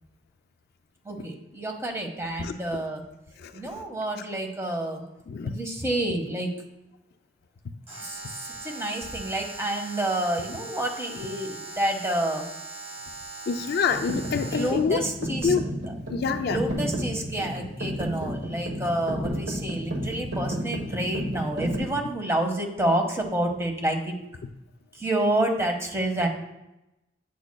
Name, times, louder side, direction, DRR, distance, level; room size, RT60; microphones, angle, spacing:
voice 1, 1.0-3.0 3.5-5.0 5.4-6.5 8.0-12.5 14.5-15.5 16.4-24.2 24.9-26.3, right 1 dB, 15° right, 3 dB, 1.0 m, -29 dB
Alarm, 7.9-14.9, right 3 dB, 35° right, 2.1 m, -40 dB
voice 2, 13.5-15.0 15.4-15.6 16.1-16.6, left 5 dB, 55° left, 9 dB, 0.4 m, -26 dB
sound 1, 13.9-21.9, equal, 70° right, 1.2 m, -32 dB
8.9 x 6.2 x 2.2 m, 0.91 s
head